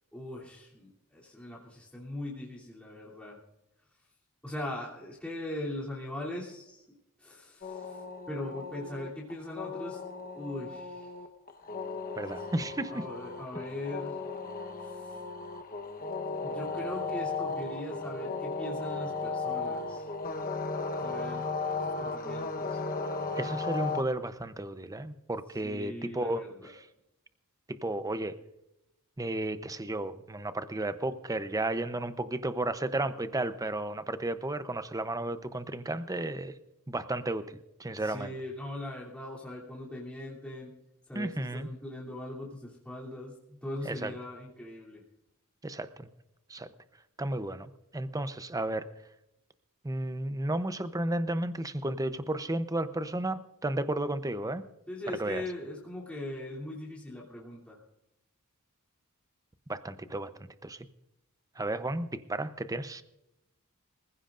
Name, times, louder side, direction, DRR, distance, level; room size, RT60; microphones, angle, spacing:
voice 1, 0.1-3.4 4.4-8.0 8.3-10.0 10.3-11.1 12.9-14.2 14.8-15.1 16.4-20.1 21.0-21.5 21.8-22.8 25.6-26.7 37.9-40.7 41.1-45.0 54.9-57.8, left 1 dB, 5° left, -7 dB, 3.0 m, -40 dB
sound 1, 7.6-24.0, left 3 dB, 40° left, 1.1 m, -36 dB
voice 2, 12.2-13.1 23.4-26.4 26.7-26.8 27.7-28.3 29.2-36.5 36.9-38.3 41.1-41.7 43.8-44.1 45.6-46.1 46.5-46.7 47.2-48.8 49.8-54.6 55.2-55.4 59.7-60.3 60.6-60.9 61.6-63.0, right 1 dB, 15° right, 12 dB, 0.7 m, -33 dB
25.5 x 15.5 x 2.5 m, 0.91 s
head